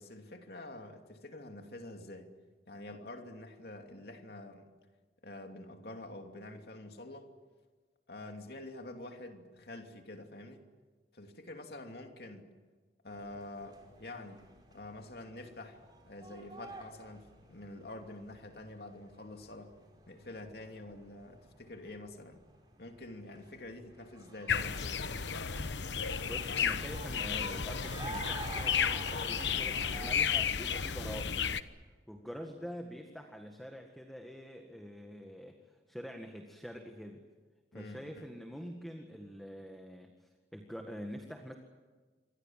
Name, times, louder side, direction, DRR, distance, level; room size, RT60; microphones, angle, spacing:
voice 1, 0.0-2.3 2.7-4.7 5.2-7.3 8.1-10.6 11.1-12.5 13.0-19.7 20.1-22.4 22.8-25.3 37.7-38.2, left 2 dB, 60° left, 4 dB, 2.8 m, -47 dB
sound 1, 13.1-30.1, right 2 dB, 25° right, 4.9 m, -50 dB
sound 2, 24.5-31.6, left 7 dB, 85° left, 1.1 m, -33 dB
voice 2, 26.2-31.5 32.1-37.2 37.7-41.5, equal, ahead, 3 dB, 1.8 m, -46 dB
27.5 x 24.0 x 7.5 m, 1.4 s
head